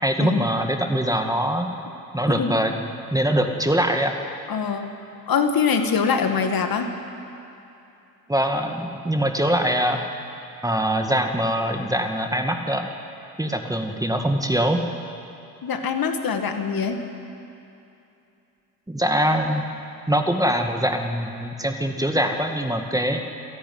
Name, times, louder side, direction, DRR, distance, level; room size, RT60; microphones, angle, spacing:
voice 1, 0.0-1.7 2.1-2.7 3.1-4.2 8.3-10.0 10.6-12.9 13.4-14.8 18.9-19.6 20.1-23.2, equal, 5° right, 4 dB, 1.9 m, -23 dB
voice 2, 4.5-4.9 5.3-6.9 15.6-17.0, left 6 dB, 45° left, 6 dB, 2.1 m, -23 dB
27.5 x 11.5 x 9.5 m, 2.7 s
hypercardioid pair, 65°, 47 cm